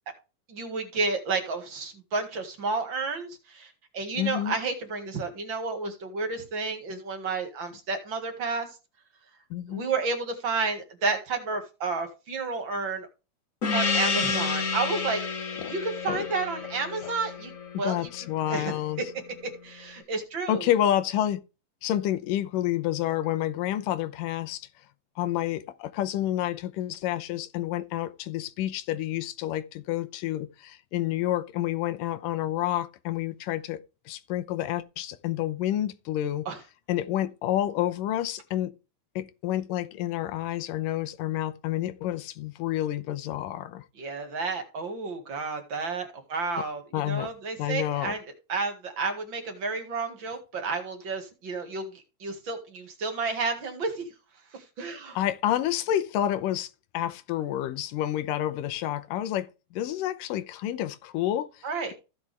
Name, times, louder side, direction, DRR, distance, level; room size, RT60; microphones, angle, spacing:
voice 1, 0.5-8.7 9.7-13.1 13.7-15.2 15.7-17.5 17.8-18.1 18.5-18.7 19.6-20.6 36.5-36.6 44.0-48.2 48.5-54.0 54.5-55.2 61.6-61.9, right 4 dB, 40° right, 2.1 m, -31 dB
voice 2, 4.2-4.5 9.5-9.9 15.6-15.7 16.1-16.3 17.0-17.1 17.7-19.0 20.5-21.4 21.8-24.7 25.2-33.8 34.1-36.5 36.9-38.7 39.2-43.8 46.9-47.3 47.6-48.2 55.2-61.9, left 12 dB, 85° left, 2.5 m, -29 dB
Gong, 13.6-18.6, left 5 dB, 70° left, 0.7 m, -30 dB
15.5 x 6.0 x 3.4 m
omnidirectional pair, 3.8 m